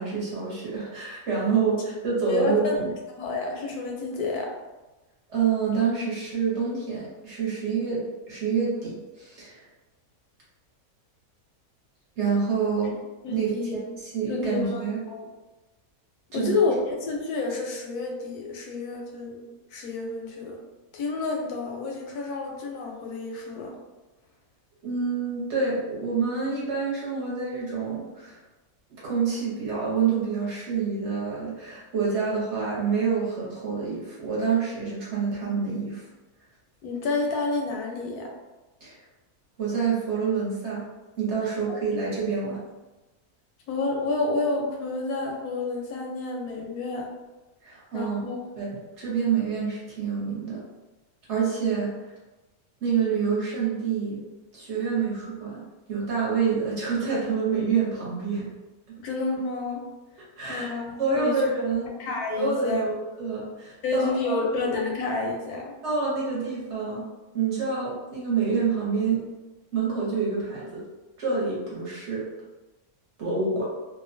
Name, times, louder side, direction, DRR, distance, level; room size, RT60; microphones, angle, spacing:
voice 1, 0.0-2.9 5.3-9.6 12.2-12.9 13.3-13.5 14.0-15.0 16.3-16.5 24.8-28.4 29.0-36.0 38.8-39.0 39.6-40.8 41.2-42.6 47.6-48.2 48.6-50.6 51.3-51.9 52.8-54.2 54.5-55.6 55.9-58.5 60.4-60.7 61.0-61.9 62.4-64.4 65.8-67.0 67.3-69.3 69.7-70.8 71.2-72.3 73.2-73.6, right 5 dB, 55° right, -7 dB, 1.0 m, -27 dB
voice 2, 2.3-2.8 3.1-4.5 13.2-13.8 14.3-15.3 16.3-19.4 19.7-20.6 20.9-23.7 36.8-38.3 43.7-47.1 47.9-48.4 59.0-59.8 60.5-61.5 62.0-62.8 63.8-65.7, left 3 dB, 85° left, 0 dB, 1.1 m, -29 dB
2.8 x 2.1 x 2.5 m, 1.1 s
omnidirectional pair, 1.6 m